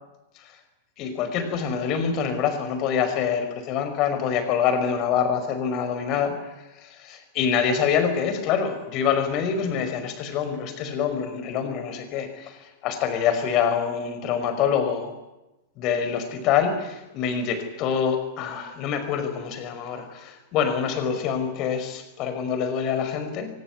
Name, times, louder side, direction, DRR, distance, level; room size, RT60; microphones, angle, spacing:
voice 1, 1.0-6.5 6.8-15.1 15.8-23.5, left 7 dB, 40° left, 8 dB, 5.4 m, -25 dB
23.5 x 21.0 x 9.6 m, 0.99 s
figure-of-eight pair, 95°, 0 cm